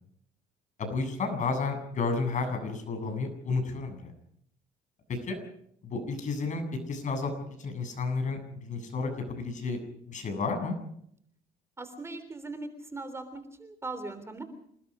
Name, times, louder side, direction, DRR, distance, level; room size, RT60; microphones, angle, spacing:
voice 1, 0.8-4.0 5.1-5.4 5.8-7.3 7.6-9.8 10.1-10.8, left 4 dB, 45° left, 6 dB, 7.6 m, -31 dB
voice 2, 11.8-14.4, right 3 dB, 15° right, 9 dB, 3.4 m, -39 dB
28.0 x 20.0 x 5.1 m, 0.68 s
cardioid pair, 110°, 17 cm